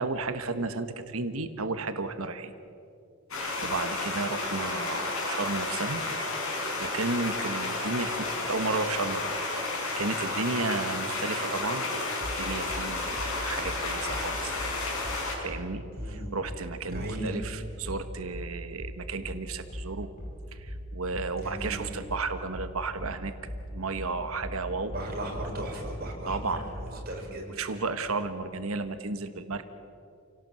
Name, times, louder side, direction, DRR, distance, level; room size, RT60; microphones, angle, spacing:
voice 1, 0.0-2.5 3.6-6.0 6.8-9.3 9.7-14.7 15.4-20.1 20.5-23.3 23.7-24.9 26.3-26.6 27.6-29.7, right 3 dB, 80° right, 9 dB, 1.3 m, -33 dB
sound 1, 3.3-15.4, left 3 dB, 80° left, 5.6 m, -32 dB
sound 2, 12.2-27.0, equal, 35° left, 5.6 m, -39 dB
voice 2, 16.0-16.3 16.9-17.3 21.4-21.8 24.9-27.4, right 1 dB, 45° right, 0 dB, 5.3 m, -37 dB
28.5 x 17.5 x 7.7 m, 2.5 s
head